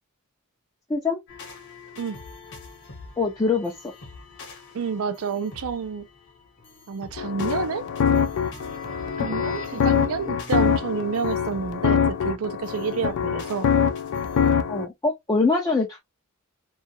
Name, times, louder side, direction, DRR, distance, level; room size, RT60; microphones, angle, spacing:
sound 1, 1.3-14.5, left 3 dB, 55° left, 0.9 m, -44 dB
voice 1, 3.2-3.7 9.2-9.4 14.7-16.0, left 3 dB, 15° left, 0.4 m, -23 dB
voice 2, 4.7-6.1 6.9-7.8 9.2-13.7, right 6 dB, 65° right, 0.4 m, -29 dB
sound 2, 7.2-14.9, left 7 dB, 80° left, 0.4 m, -24 dB
2.3 x 2.3 x 2.6 m
head